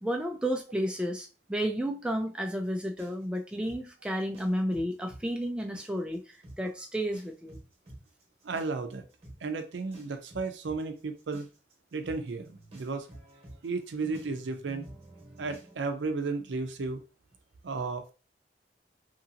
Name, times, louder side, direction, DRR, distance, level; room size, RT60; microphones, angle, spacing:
voice 1, 0.0-7.6, equal, 5° right, 2 dB, 0.3 m, -32 dB
sound 1, 3.0-5.2 5.6-6.2 6.4-6.6 7.1-15.7, right 1 dB, 35° right, 1.0 m, -49 dB
voice 2, 8.4-9.0 9.4-11.5 11.9-13.1 13.6-14.9 15.4-17.0 17.6-18.1, right 4 dB, 75° right, 7 dB, 0.5 m, -34 dB
2.8 x 2.7 x 2.6 m, 0.33 s
head